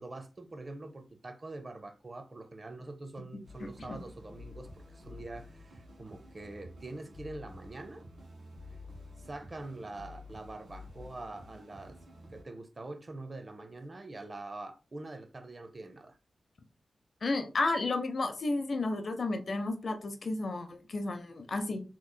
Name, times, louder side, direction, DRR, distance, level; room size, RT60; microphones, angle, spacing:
voice 1, 0.0-8.1 9.2-12.0 12.3-16.2, right 2 dB, 45° right, 0.5 m, -44 dB
sound 1, 3.4-12.4, left 2 dB, 85° right, 1.4 m, -50 dB
voice 2, 3.6-4.0 17.2-21.8, left 2 dB, 60° left, 0.6 m, -32 dB
3.8 x 3.0 x 2.2 m
cardioid pair, 40°, 0 cm